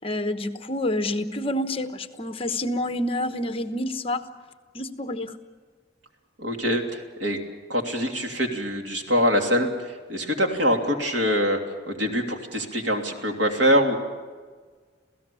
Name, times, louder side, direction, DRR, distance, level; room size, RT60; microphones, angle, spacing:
voice 1, 0.0-4.2 4.7-5.4, left 1 dB, 30° left, 8 dB, 1.1 m, -28 dB
voice 2, 6.4-7.4 7.7-11.6 11.9-14.0, equal, 80° right, 2 dB, 3.0 m, -24 dB
27.5 x 17.0 x 7.0 m, 1.5 s
head